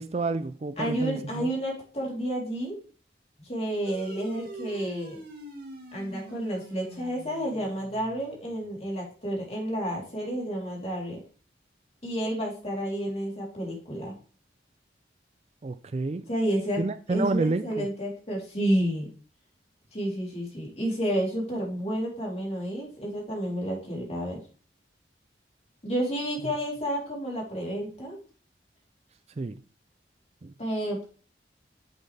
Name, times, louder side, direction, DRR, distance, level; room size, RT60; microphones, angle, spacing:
voice 1, 0.0-1.5 15.6-16.2 16.8-17.9 29.4-29.6 30.4-30.5, right 3 dB, 35° right, 0.4 m, -29 dB
voice 2, 0.8-2.8 3.4-5.2 5.9-11.2 12.0-14.1 16.3-16.8 17.1-19.1 19.9-24.4 25.8-28.2 30.6-31.0, equal, 35° left, 3.4 m, -30 dB
sound 1, 3.9-8.7, right 1 dB, 55° right, 2.6 m, -44 dB
9.3 x 7.7 x 3.3 m
head